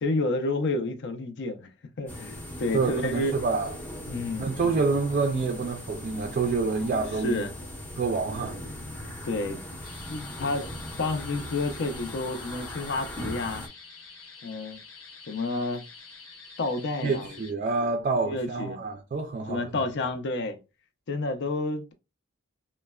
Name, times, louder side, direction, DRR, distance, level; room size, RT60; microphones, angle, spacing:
voice 1, 0.0-1.7 2.0-3.3 4.1-4.5 7.2-7.6 9.2-9.6 10.1-10.7 11.0-13.6 14.4-14.8 15.3-15.8 16.6-17.6 18.2-18.8 19.5-20.6 21.1-21.9, left 2 dB, 55° left, 0.5 m, -30 dB
sound 1, 2.1-13.7, equal, 10° left, 0.6 m, -39 dB
voice 2, 2.7-3.7 4.4-7.4 8.0-8.6 17.0-19.7, right 4 dB, 40° right, 0.3 m, -27 dB
sound 2, 9.8-17.5, left 4 dB, 75° left, 1.0 m, -48 dB
3.1 x 2.1 x 2.2 m
head